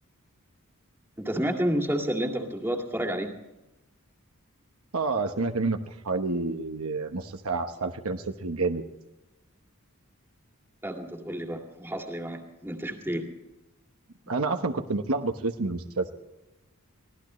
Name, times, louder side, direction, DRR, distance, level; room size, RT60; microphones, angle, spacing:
voice 1, 1.2-3.3 10.8-13.3, equal, 10° right, 2 dB, 2.3 m, -30 dB
voice 2, 4.9-5.8 6.0-8.8 14.3-16.1, right 3 dB, 75° right, 6 dB, 1.1 m, -29 dB
24.0 x 16.5 x 3.2 m, 1.0 s
head